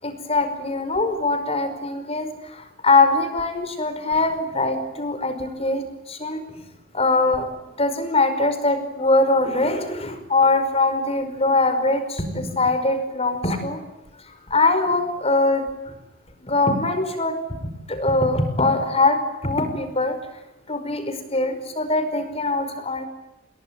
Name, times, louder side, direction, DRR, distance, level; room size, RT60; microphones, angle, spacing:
voice 1, 0.0-6.4 6.9-7.5 7.8-13.8 14.5-15.7 16.4-17.4 17.9-20.2 20.7-23.1, left 2 dB, 30° left, 10 dB, 5.3 m, -22 dB
29.0 x 21.5 x 9.5 m, 0.93 s
head